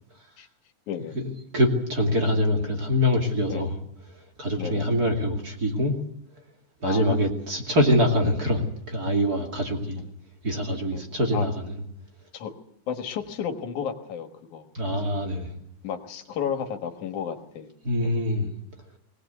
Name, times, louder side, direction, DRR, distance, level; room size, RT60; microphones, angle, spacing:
voice 1, 1.1-3.8 4.4-5.9 6.8-10.0 10.4-11.8 14.7-15.5 17.8-18.5, left 1 dB, 30° right, 2 dB, 2.8 m, -24 dB
voice 2, 4.6-4.9 6.8-7.2 10.9-11.0 11.3-11.5 12.3-12.5 12.9-15.2 15.8-17.7 18.0-18.2, left 7 dB, 85° left, 6 dB, 3.0 m, -33 dB
21.5 x 18.0 x 8.2 m, 0.74 s
omnidirectional pair, 3.4 m